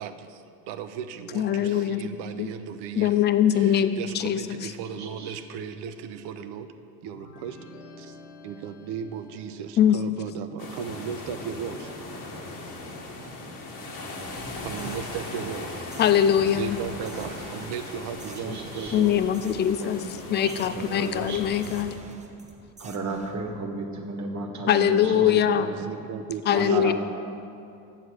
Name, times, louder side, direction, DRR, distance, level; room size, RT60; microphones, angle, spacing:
voice 1, 0.0-3.1 3.5-6.7 7.0-7.6 8.0-8.2 8.4-11.9 14.0-16.0 16.5-19.2 25.1-26.9, right 7 dB, 55° right, 9 dB, 0.7 m, -36 dB
voice 2, 1.3-2.1 2.4-2.5 3.0-4.7 9.8-10.0 16.0-16.8 18.9-22.0 24.7-25.7 26.5-26.9, left 9 dB, 25° left, 12 dB, 0.3 m, -22 dB
voice 3, 5.0-5.4 18.4-19.0 19.8-21.8 22.8-25.9 26.5-26.9, right 3 dB, 35° right, 3 dB, 1.4 m, -34 dB
sound 1, 7.1-9.9, left 3 dB, 85° left, 1.2 m, -49 dB
sound 2, 10.6-22.0, left 2 dB, 45° left, 1.6 m, -39 dB
sound 3, 14.2-23.4, right 1 dB, 15° right, 0.8 m, -48 dB
7.8 x 6.5 x 6.4 m, 2.5 s
hypercardioid pair, 70°, 48 cm